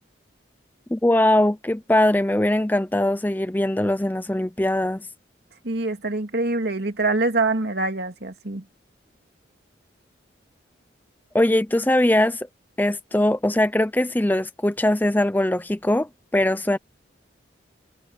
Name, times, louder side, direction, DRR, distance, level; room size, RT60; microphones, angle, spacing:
voice 1, 0.9-5.1 11.3-12.5 12.8-16.8, left 1 dB, 10° left, 0.5 m, -21 dB
voice 2, 5.6-8.6, right 2 dB, 60° right, 2.5 m, -24 dB
head